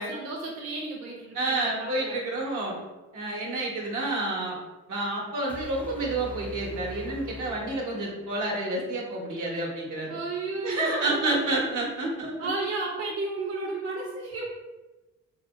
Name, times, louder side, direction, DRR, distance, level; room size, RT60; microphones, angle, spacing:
voice 1, 0.0-2.2 10.1-11.4 12.4-14.5, right 3 dB, 50° right, -3 dB, 0.7 m, -33 dB
voice 2, 1.3-2.8 3.1-4.6 4.9-10.2 10.6-12.5, right 2 dB, 75° right, -3 dB, 1.1 m, -29 dB
sound 1, 5.5-8.5, left 1 dB, 5° left, 0.4 m, -42 dB
2.9 x 2.2 x 4.0 m, 1.1 s
cardioid pair, 90°, 30 cm